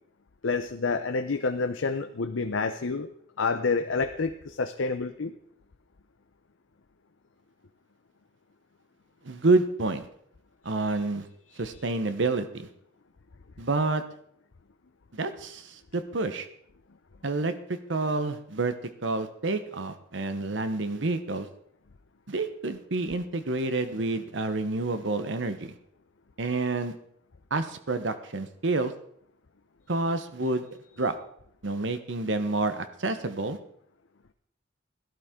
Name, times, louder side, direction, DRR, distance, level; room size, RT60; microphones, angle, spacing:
voice 1, 0.4-3.1 3.4-5.3, left 4 dB, 85° left, 8 dB, 0.7 m, -28 dB
voice 2, 9.2-10.1 10.6-11.3 11.6-12.7 13.6-14.0 15.1-16.5 17.2-18.7 19.0-21.5 22.3-25.7 26.4-26.9 27.5-28.9 29.9-30.6 31.0-31.1 31.6-33.6, right 3 dB, 70° right, 10 dB, 0.9 m, -28 dB
17.0 x 12.0 x 3.7 m, 0.69 s
head